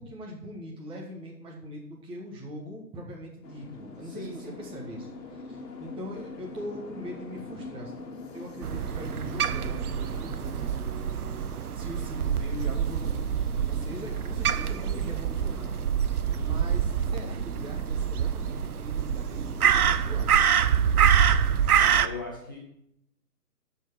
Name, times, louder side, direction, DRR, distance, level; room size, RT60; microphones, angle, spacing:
voice 1, 0.0-7.9 8.3-10.8 11.7-13.3 13.7-15.8 16.3-20.5, equal, 10° right, -2 dB, 1.6 m, -41 dB
sound 1, 3.4-21.9, left 3 dB, 75° left, 2.5 m, -45 dB
voice 2, 4.0-4.6 21.8-22.6, left 1 dB, 15° left, -3 dB, 0.4 m, -38 dB
Crow, 8.6-22.1, right 8 dB, 65° right, 0.8 m, -26 dB
13.0 x 4.7 x 6.1 m, 0.77 s
hypercardioid pair, 145°, 49 cm